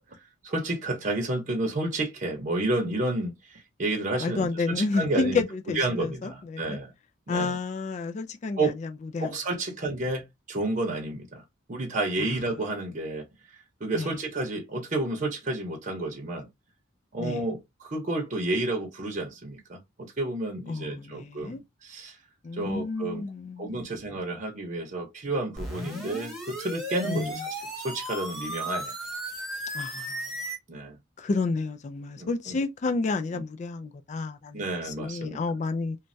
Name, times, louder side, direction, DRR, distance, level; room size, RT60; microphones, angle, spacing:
voice 1, 0.1-5.4 5.7-6.9 7.3-7.6 8.6-8.8 9.2-16.5 17.1-22.2 22.5-23.2 23.6-28.9 30.7-31.0 32.2-32.6 34.5-35.4, right 2 dB, 40° right, 0.8 m, -31 dB
voice 2, 4.2-6.8 7.3-9.3 12.2-12.3 13.9-14.1 17.2-17.4 20.7-21.6 22.4-23.9 27.0-27.4 29.7-30.2 31.2-36.0, left 3 dB, 35° left, 0.3 m, -30 dB
sound 1, 25.6-30.6, equal, ahead, 1.0 m, -35 dB
3.1 x 2.2 x 2.5 m
head